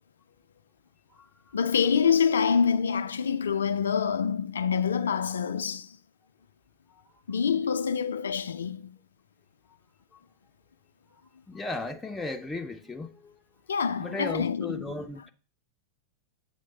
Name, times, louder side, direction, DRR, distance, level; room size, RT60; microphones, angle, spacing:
voice 1, 1.5-6.0 7.3-9.0 13.7-15.0, left 6 dB, 70° left, 0.4 m, -26 dB
voice 2, 11.5-13.3 14.0-15.3, left 2 dB, 10° left, 0.5 m, -35 dB
7.8 x 3.1 x 5.4 m
figure-of-eight pair, 90°, 0 cm